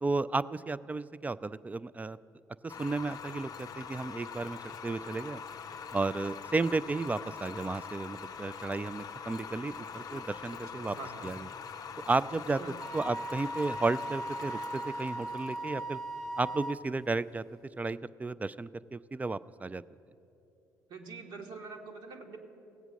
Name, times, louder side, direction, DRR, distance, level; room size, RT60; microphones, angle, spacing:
voice 1, 0.0-2.2 2.6-5.4 5.9-11.0 11.2-11.5 12.0-12.6 12.9-16.0 16.4-17.4 17.8-19.8, right 3 dB, 15° right, 17 dB, 0.3 m, -33 dB
sound 1, 2.7-17.6, left 6 dB, 45° left, 0.6 m, -44 dB
voice 2, 10.5-11.3 12.6-12.8 20.9-22.5, right 3 dB, 65° right, 2 dB, 1.5 m, -45 dB
Wind instrument woodwind instrument, 12.8-16.8, right 1 dB, 5° left, 1.1 m, -38 dB
17.0 x 8.1 x 6.2 m, 2.9 s
hypercardioid pair, 60°, 9 cm